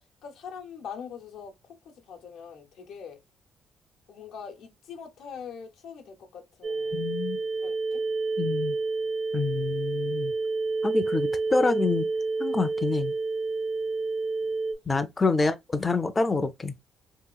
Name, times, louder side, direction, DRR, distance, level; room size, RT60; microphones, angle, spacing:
voice 1, 0.2-1.5 1.8-3.2 4.1-7.1 7.6-8.0 14.4-14.5 15.4-15.5, left 7 dB, 85° left, 0.7 m, -43 dB
sound 1, 6.6-14.7, right 3 dB, 55° right, 0.6 m, -29 dB
voice 2, 6.9-7.4 8.4-8.8 9.3-10.3 10.8-12.1 12.4-13.1 14.9-16.7, left 3 dB, 25° left, 0.4 m, -27 dB
3.0 x 2.8 x 2.2 m
cardioid pair, 90°, 0 cm